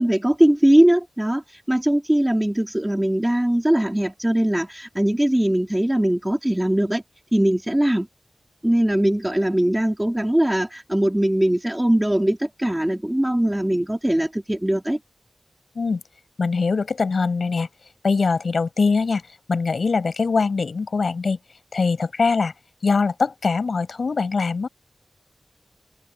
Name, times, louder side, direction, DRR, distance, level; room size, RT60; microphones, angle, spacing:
voice 1, 0.0-7.0 7.3-8.1 8.6-15.0, right 1 dB, 15° right, 3.7 m, -20 dB
voice 2, 16.4-17.7 18.0-19.2 19.5-21.4 21.7-22.5 22.8-24.7, left 4 dB, 80° left, 6.3 m, -22 dB
cardioid pair, 40°, 0 cm